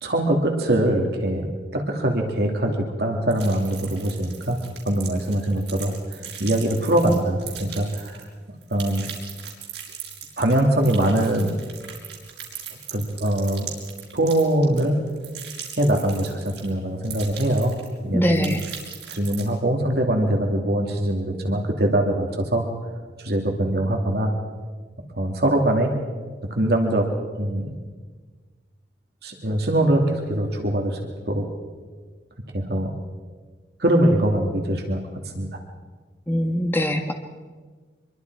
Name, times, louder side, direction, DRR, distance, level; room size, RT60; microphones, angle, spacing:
voice 1, 0.0-4.6 4.9-8.2 8.7-9.0 10.4-11.5 12.9-13.7 14.1-15.0 15.8-17.7 18.0-18.5 19.1-22.6 23.2-24.3 25.1-25.9 26.5-27.1 27.4-27.7 29.2-31.0 31.3-31.4 32.5-32.9 33.8-35.0 35.4-35.5, right 1 dB, 60° right, 2 dB, 2.6 m, -22 dB
sound 1, 3.3-8.3 8.6-16.7 17.0-18.0 18.2-19.4, right 8 dB, 80° right, 5.1 m, -39 dB
voice 2, 18.1-18.6 36.3-37.1, equal, 10° left, 4 dB, 1.6 m, -22 dB
25.0 x 23.0 x 4.8 m, 1.4 s
head